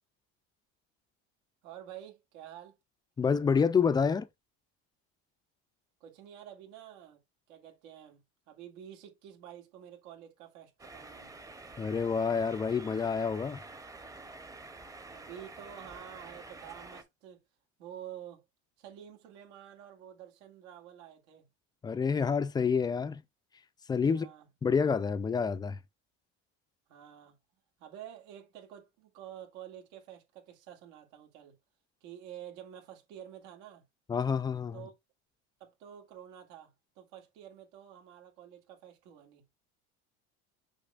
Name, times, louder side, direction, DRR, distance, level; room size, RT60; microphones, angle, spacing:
voice 1, 1.6-2.8 6.0-7.2 7.5-8.2 8.5-11.3 15.1-17.4 17.8-18.5 18.8-21.5 24.1-24.5 26.9-27.4 27.8-31.6 32.0-33.8 34.7-34.9 35.6-39.4, right 10 dB, 85° right, 2.3 m, -49 dB
voice 2, 3.2-4.3 11.8-13.6 21.8-23.2 23.9-24.3 24.6-25.8 34.1-34.8, left 6 dB, 15° left, 0.3 m, -28 dB
sound 1, 10.8-17.0, right 3 dB, 10° right, 0.7 m, -48 dB
6.8 x 5.8 x 2.4 m
cardioid pair, 145°, 33 cm